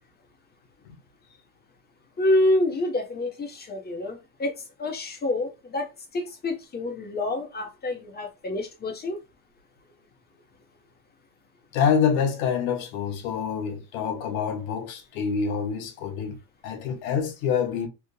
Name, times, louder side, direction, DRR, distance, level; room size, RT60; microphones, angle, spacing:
voice 1, 2.2-9.2, left 1 dB, 25° left, 1.0 m, -27 dB
voice 2, 11.7-16.4 16.6-17.9, left 7 dB, 85° left, 1.0 m, -26 dB
3.2 x 2.4 x 2.2 m
supercardioid pair, 105°, 41 cm